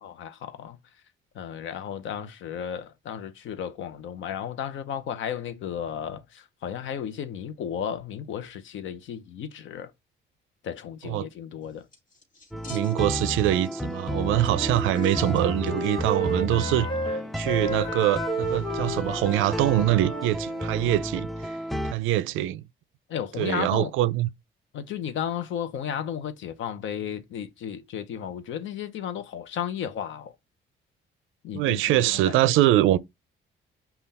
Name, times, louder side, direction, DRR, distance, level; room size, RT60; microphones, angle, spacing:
voice 1, 0.0-0.8 1.3-9.9 10.6-11.8 23.1-23.9 24.7-30.3 31.4-32.6, left 9 dB, 75° left, 0.7 m, -34 dB
sound 1, 11.6-13.3 13.6-13.7 14.4-15.7 16.0-16.1, left 3 dB, 40° left, 1.7 m, -49 dB
sound 2, 12.5-21.9, equal, ahead, 0.3 m, -32 dB
voice 2, 12.7-16.9 17.4-21.6 21.8-22.6 23.4-24.3 31.5-33.0, right 14 dB, 90° right, 0.4 m, -24 dB
Wind instrument woodwind instrument, 14.0-20.9, right 1 dB, 25° left, 1.2 m, -32 dB
5.5 x 2.3 x 4.0 m
cardioid pair, 90°, 20 cm